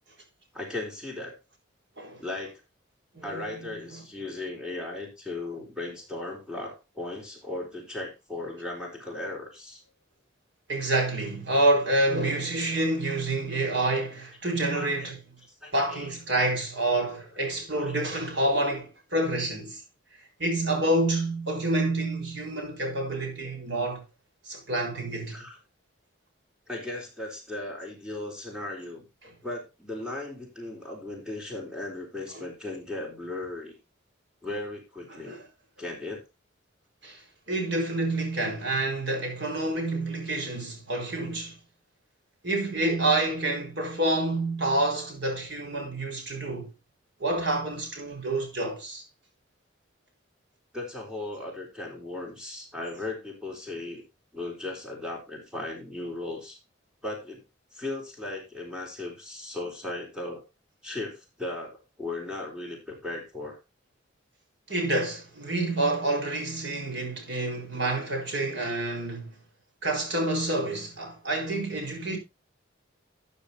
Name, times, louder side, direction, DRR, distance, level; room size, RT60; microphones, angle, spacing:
voice 1, 0.5-1.4 2.2-2.6 3.2-9.8 14.7-15.1 15.6-16.1 17.8-18.0 25.3-25.6 26.7-29.1 29.4-33.8 34.4-35.3 35.8-36.2 50.7-54.0 54.3-56.6 57.0-57.4 57.7-60.4 60.8-63.6, left 2 dB, 5° right, 3.9 m, -37 dB
voice 2, 3.1-3.8 10.7-15.2 15.7-19.8 20.4-24.0 24.5-25.4 29.2-29.3 32.3-32.4 35.1-35.5 37.0-37.2 37.5-41.6 42.4-46.7 47.2-49.0 64.7-69.4 69.8-72.2, right 2 dB, 60° right, 4.5 m, -28 dB
13.5 x 9.3 x 2.7 m
head